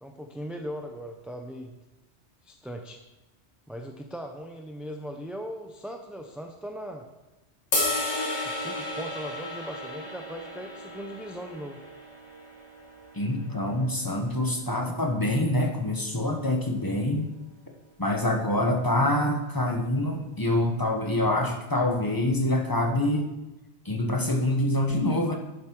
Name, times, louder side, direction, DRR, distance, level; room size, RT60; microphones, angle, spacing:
voice 1, 0.0-1.7 2.4-3.0 3.7-7.1 8.4-11.8, equal, ahead, 3 dB, 0.5 m, -39 dB
sound 1, 7.7-13.9, left 2 dB, 85° left, 2.5 m, -33 dB
voice 2, 13.1-17.3 18.0-23.3 23.8-25.4, left 1 dB, 20° left, 1 dB, 1.2 m, -26 dB
11.5 x 7.3 x 4.5 m, 1.0 s
omnidirectional pair, 1.2 m